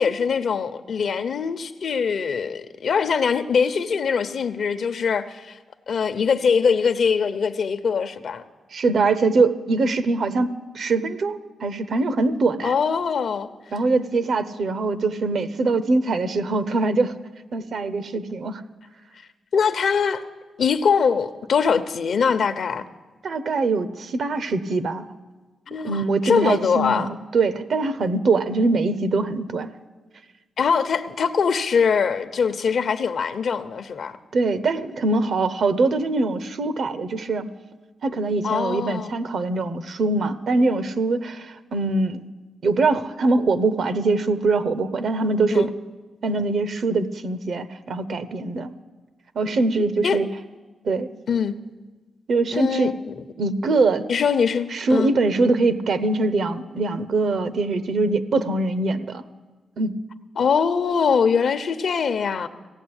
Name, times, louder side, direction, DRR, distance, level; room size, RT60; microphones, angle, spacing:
voice 1, 0.0-5.6 5.9-8.4 12.6-13.5 19.5-20.2 20.6-22.8 25.7-27.1 30.6-34.2 38.4-39.2 45.5-45.7 50.0-50.2 51.3-51.6 52.5-53.2 54.1-55.1 60.4-62.5, left 6 dB, 65° left, 11 dB, 0.8 m, -22 dB
voice 2, 8.7-12.7 13.7-17.1 17.5-18.6 23.2-25.1 25.8-29.7 34.3-37.5 38.0-42.2 42.6-45.7 46.2-48.7 49.3-50.3 50.8-51.1 52.3-52.9 53.4-54.0 54.7-59.2 59.8-60.0, right 3 dB, 65° right, 13 dB, 0.8 m, -23 dB
16.0 x 8.4 x 8.9 m, 1.3 s
cardioid pair, 95°, 0 cm